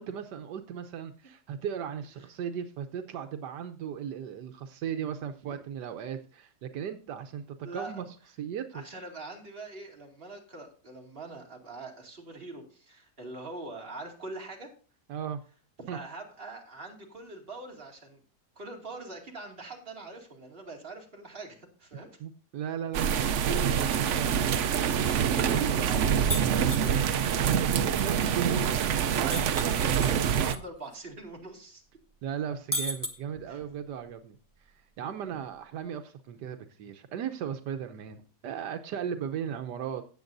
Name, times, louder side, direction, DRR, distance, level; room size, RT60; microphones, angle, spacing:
voice 1, 0.0-8.0 8.4-8.8 15.1-15.4 15.9-16.0 22.2-24.3 25.0-25.9 26.6-27.1 27.6-29.9 32.2-40.0, right 8 dB, 85° right, 8 dB, 1.4 m, -36 dB
voice 2, 7.6-8.1 8.7-14.7 15.8-18.2 18.6-22.2 25.5-27.1 29.3-31.8 33.5-33.6, right 2 dB, 35° right, 0 dB, 2.5 m, -43 dB
sound 1, 22.9-30.6, right 8 dB, 60° right, 0.8 m, -26 dB
sound 2, 26.3-26.9 29.3-30.6 30.9-31.0 32.7-33.7, left 1 dB, 15° left, 1.1 m, -33 dB
16.5 x 7.4 x 2.6 m, 0.38 s
omnidirectional pair, 1.8 m